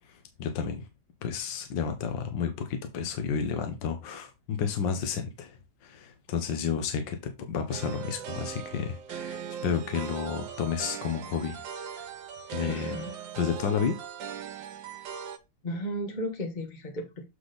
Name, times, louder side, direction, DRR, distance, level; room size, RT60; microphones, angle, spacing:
voice 1, 0.1-0.8 1.2-5.5 5.8-12.0 12.5-13.0 13.4-14.0, left 7 dB, 70° left, 1.6 m, -31 dB
sound 1, 7.7-15.4, right 8 dB, 75° right, 1.5 m, -39 dB
voice 2, 12.7-13.1 15.6-17.3, equal, 35° left, 0.9 m, -34 dB
8.2 x 3.6 x 3.9 m
omnidirectional pair, 2.1 m